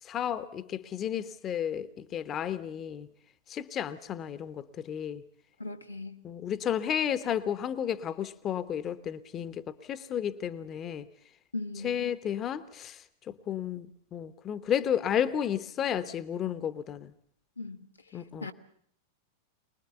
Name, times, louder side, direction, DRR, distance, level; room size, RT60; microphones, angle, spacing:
voice 1, 0.0-3.1 3.5-5.2 6.2-11.1 11.8-17.1 18.1-18.5, left 9 dB, 30° left, 1.0 m, -32 dB
voice 2, 5.6-6.3 11.5-12.1 17.6-17.8 18.1-18.5, left 3 dB, 85° left, 1.4 m, -39 dB
24.0 x 20.5 x 6.9 m
figure-of-eight pair, 90°, 0 cm